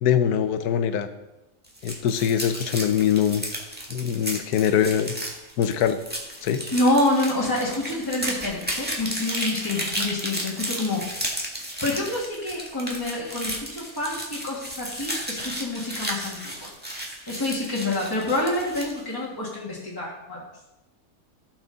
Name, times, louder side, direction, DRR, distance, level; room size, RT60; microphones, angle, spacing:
voice 1, 0.0-1.1 1.8-3.4 3.9-5.1 5.6-6.0 6.4-6.6, left 9 dB, 70° left, 10 dB, 1.2 m, -23 dB
sound 1, 1.6-19.0, right 1 dB, 5° right, 1.4 m, -33 dB
voice 2, 6.7-11.0 11.8-16.7 17.3-20.4, left 2 dB, 15° left, -5 dB, 1.9 m, -27 dB
14.5 x 6.3 x 4.0 m, 0.96 s
omnidirectional pair, 1.8 m